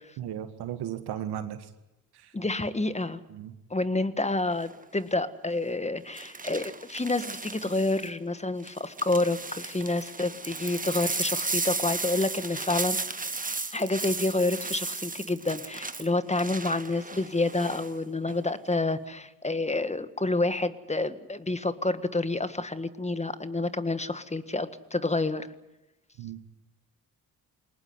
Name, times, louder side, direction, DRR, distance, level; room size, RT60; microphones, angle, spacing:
voice 1, 0.2-1.6 3.3-3.5 26.2-26.4, right 10 dB, 85° right, 10 dB, 1.9 m, -35 dB
voice 2, 2.3-3.2 3.7-13.0 13.7-25.5, left 2 dB, 15° left, 12 dB, 1.6 m, -28 dB
sound 1, 4.5-4.8 6.2-8.1 8.6-17.9 18.3-18.7, right 3 dB, 20° right, 1.6 m, -35 dB
22.0 x 19.5 x 9.7 m, 0.94 s
supercardioid pair, 60°, 38 cm